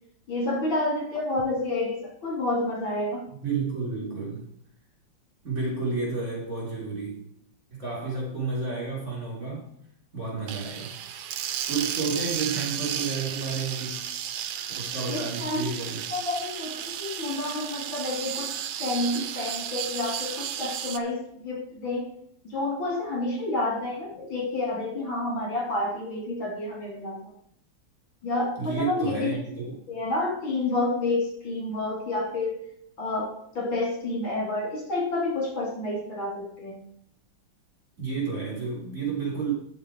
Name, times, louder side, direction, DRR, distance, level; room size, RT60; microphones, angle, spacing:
voice 1, 0.3-3.3 15.1-15.7 16.1-21.2 21.4-22.0 22.4-27.2 28.2-32.6 33.0-36.8, left 2 dB, 75° left, -2 dB, 4.1 m, -29 dB
voice 2, 3.4-4.5 5.4-7.2 7.7-9.7 10.1-10.9 11.7-14.0 14.8-16.0 28.6-29.8 38.0-39.5, right 4 dB, 45° right, -3 dB, 4.1 m, -31 dB
sound 1, 10.5-21.0, right 10 dB, 85° right, 1.5 m, -33 dB
9.5 x 7.1 x 4.9 m, 0.68 s
omnidirectional pair, 2.1 m